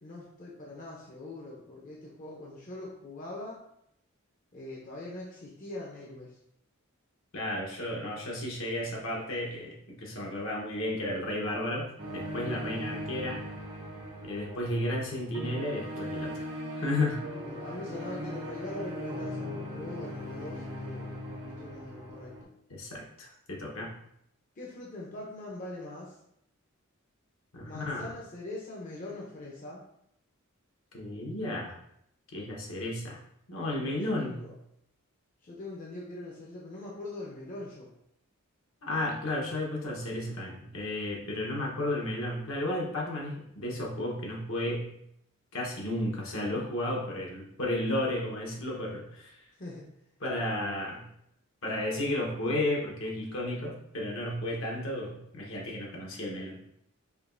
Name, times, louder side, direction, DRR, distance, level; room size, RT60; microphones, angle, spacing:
voice 1, 0.0-3.6 4.5-6.4 17.4-21.1 21.5-22.5 24.6-26.2 27.6-29.8 34.2-34.5 35.4-37.9 49.6-49.9, left 2 dB, 40° left, -4 dB, 0.7 m, -42 dB
voice 2, 7.3-13.4 14.2-17.3 22.7-23.9 27.5-28.1 30.9-31.8 32.3-33.2 33.5-34.4 38.8-44.9 45.5-49.4 50.2-51.1 51.6-56.8, left 1 dB, 70° left, -2 dB, 1.1 m, -33 dB
sound 1, 12.0-22.4, equal, 80° right, 1.3 m, -39 dB
5.0 x 2.9 x 2.6 m, 0.75 s
head